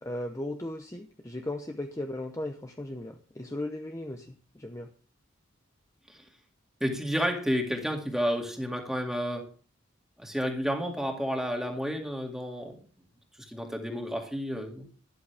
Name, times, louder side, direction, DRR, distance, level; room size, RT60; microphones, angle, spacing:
voice 1, 0.0-4.9, left 1 dB, 15° left, 5 dB, 0.8 m, -37 dB
voice 2, 6.8-9.5 10.2-12.8 13.5-14.9, equal, ahead, 2 dB, 2.2 m, -31 dB
13.0 x 11.5 x 3.4 m, 0.37 s
head